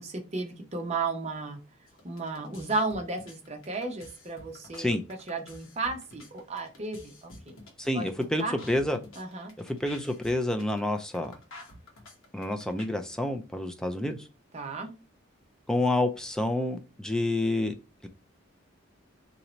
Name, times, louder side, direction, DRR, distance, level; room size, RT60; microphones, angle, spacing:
voice 1, 0.0-1.6 2.0-5.0 5.3-7.5 7.9-8.6 9.2-9.5 14.5-14.9, right 3 dB, 30° right, 0.6 m, -34 dB
sound 1, 1.9-12.9, left 2 dB, 75° left, 1.1 m, -49 dB
voice 2, 7.8-9.0 9.7-11.3 12.3-14.3 15.7-17.7 18.0-18.1, left 1 dB, 5° left, 0.4 m, -28 dB
2.9 x 2.7 x 4.3 m
head